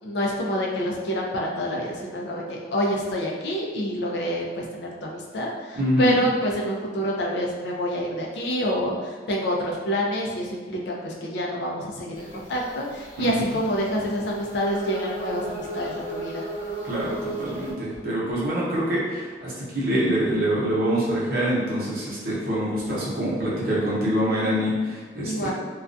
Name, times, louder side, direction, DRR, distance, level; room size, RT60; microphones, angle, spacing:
voice 1, 0.0-16.5 25.2-25.5, equal, 70° left, -2 dB, 0.4 m, -27 dB
voice 2, 5.8-6.2 13.2-13.4 16.8-25.5, right 1 dB, 55° right, -7 dB, 0.7 m, -25 dB
sound 1, 12.1-17.7, right 1 dB, 25° left, 1.0 m, -35 dB
2.3 x 2.2 x 2.5 m, 1.4 s
head